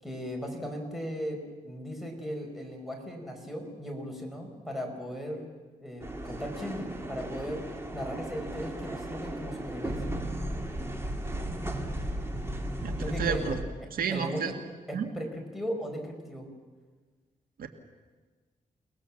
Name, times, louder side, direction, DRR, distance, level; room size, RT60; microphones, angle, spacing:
voice 1, 0.0-1.4 1.6-5.5 5.8-7.6 7.9-10.1 13.0-13.5 14.1-14.5 14.9-16.5, equal, ahead, 2 dB, 5.4 m, -37 dB
sound 1, 6.0-13.6, right 1 dB, 15° right, 2.6 m, -35 dB
voice 2, 12.8-13.6 13.9-14.5 14.9-15.1 17.6-17.7, right 7 dB, 85° right, 6 dB, 1.9 m, -31 dB
29.5 x 20.0 x 7.5 m, 1.4 s
wide cardioid pair, 120°, 15 cm